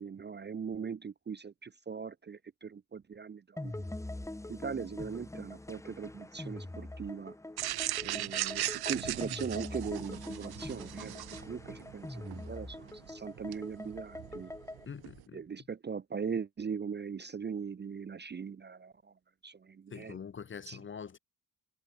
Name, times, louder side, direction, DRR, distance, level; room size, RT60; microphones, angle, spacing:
voice 1, 0.0-3.7 4.5-7.3 8.0-11.1 11.4-14.5 15.3-18.9 19.4-20.2 20.7-20.8, right 6 dB, 25° right, 0.6 m, -40 dB
sound 1, 3.6-14.9, left 2 dB, 5° left, 1.2 m, -44 dB
sound 2, 7.6-15.2, right 14 dB, 65° right, 0.7 m, -39 dB
voice 2, 14.8-15.4 19.9-21.2, left 6 dB, 30° left, 0.7 m, -44 dB
wide cardioid pair, 155°, 41 cm